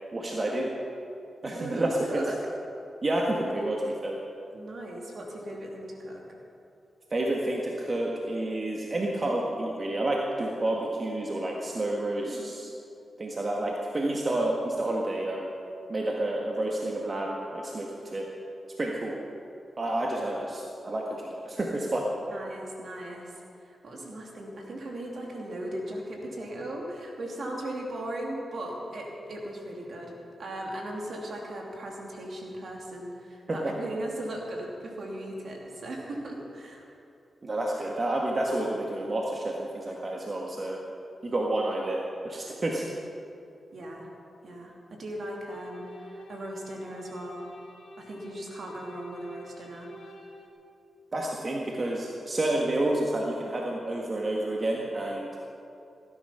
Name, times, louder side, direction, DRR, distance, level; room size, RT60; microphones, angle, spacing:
voice 1, 0.1-0.7 1.4-2.3 3.0-4.2 7.1-12.7 13.2-15.5 15.9-18.3 18.8-19.1 19.8-22.0 33.5-33.7 37.4-40.8 41.2-42.8 51.1-55.3, right 1 dB, 45° right, -1 dB, 1.7 m, -29 dB
voice 2, 1.5-2.4 4.5-6.2 12.2-12.5 22.3-23.3 23.6-30.1 30.4-36.8 43.7-44.1 44.4-47.4 48.0-49.9, right 1 dB, 65° right, -1 dB, 2.7 m, -38 dB
Something is coming, 45.5-50.5, equal, 85° left, 1.7 m, -48 dB
16.5 x 10.5 x 5.7 m, 2.7 s
cardioid pair, 45°, 0 cm